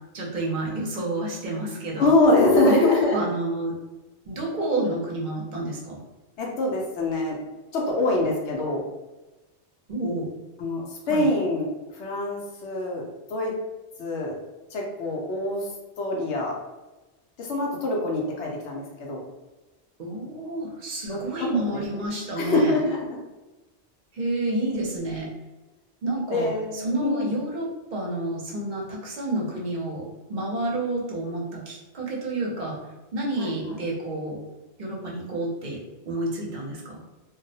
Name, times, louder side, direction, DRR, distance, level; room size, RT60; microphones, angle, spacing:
voice 1, 0.1-2.1 2.6-3.8 4.3-6.0 9.9-10.3 11.1-11.3 20.0-22.8 24.1-25.3 26.0-30.0 30.3-32.8 33.1-34.4 34.8-35.8 36.1-36.9, right 1 dB, 50° right, -3 dB, 0.6 m, -29 dB
voice 2, 2.0-3.2 6.4-7.4 7.7-8.8 10.6-13.0 13.3-13.6 14.0-14.4 14.7-15.7 16.0-16.6 17.4-19.2 21.1-22.0 22.4-23.2 26.3-27.3 33.4-33.7, left 2 dB, 80° left, -1 dB, 0.9 m, -24 dB
2.3 x 2.0 x 2.6 m, 1.1 s
omnidirectional pair, 1.2 m